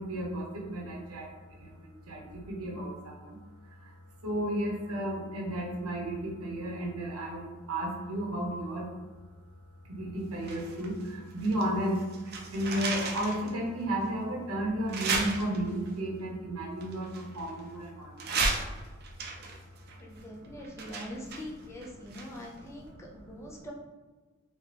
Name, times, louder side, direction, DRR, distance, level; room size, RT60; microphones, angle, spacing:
voice 1, 0.0-3.4 3.6-8.9 9.8-18.4 20.3-21.1 22.1-23.7, right 1 dB, 80° right, -2 dB, 0.8 m, -34 dB
sound 1, 10.4-11.7 12.0-13.5 14.0-14.1 14.9-15.9 16.8-17.8 18.2-22.6 22.9-23.0, right 3 dB, 45° right, 0.5 m, -34 dB
voice 2, 20.0-23.7, left 1 dB, 10° left, -3 dB, 0.5 m, -43 dB
3.3 x 2.9 x 2.9 m, 1.3 s
head